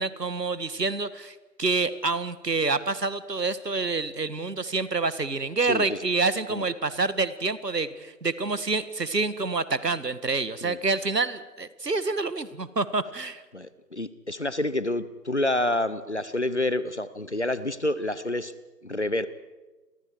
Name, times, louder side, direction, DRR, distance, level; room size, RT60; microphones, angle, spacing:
voice 1, 0.0-13.4, right 3 dB, 75° right, 14 dB, 1.7 m, -27 dB
voice 2, 5.6-6.0 6.5-6.6 10.6-10.8 13.5-18.5 18.8-19.3, left 1 dB, 45° left, 15 dB, 1.0 m, -28 dB
30.0 x 23.0 x 4.7 m, 1.2 s
figure-of-eight pair, 175°, 49 cm